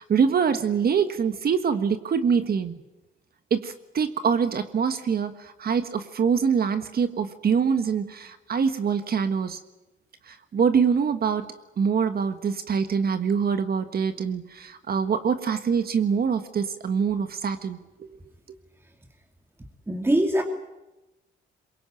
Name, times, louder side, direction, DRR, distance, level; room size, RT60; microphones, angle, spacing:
voice 1, 0.0-2.8 3.5-9.6 10.3-11.5 11.8-18.1, right 6 dB, 50° right, 9 dB, 1.5 m, -24 dB
voice 2, 19.9-20.4, right 1 dB, 10° right, 4 dB, 2.5 m, -22 dB
23.0 x 21.5 x 9.1 m, 1.0 s
cardioid pair, 90°, 20 cm